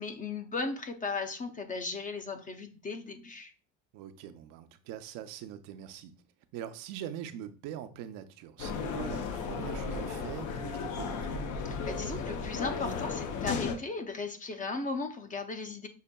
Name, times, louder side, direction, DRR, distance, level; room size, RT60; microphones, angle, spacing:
voice 1, 0.0-3.5 11.6-15.9, left 4 dB, 25° left, 0.5 m, -36 dB
voice 2, 3.9-6.1 6.5-11.3, right 10 dB, 75° right, 0.6 m, -43 dB
sound 1, 8.6-13.8, left 5 dB, 60° left, 0.7 m, -34 dB
6.4 x 2.6 x 2.2 m
cardioid pair, 120°, 34 cm